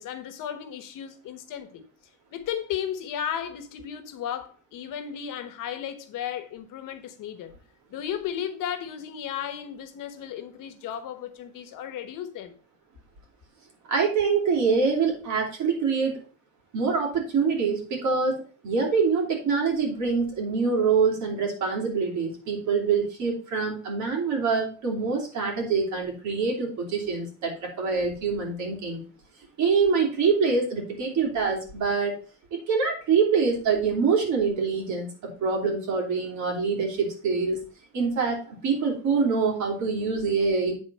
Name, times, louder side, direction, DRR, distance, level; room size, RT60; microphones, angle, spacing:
voice 1, 0.0-1.8 2.3-7.6 7.9-12.6, left 9 dB, 80° left, 1.2 m, -34 dB
voice 2, 13.9-16.2 16.7-29.0 29.6-32.2 32.7-37.6 37.9-40.7, right 5 dB, 65° right, 3.2 m, -25 dB
9.0 x 4.1 x 5.5 m
cardioid pair, 175°, 32 cm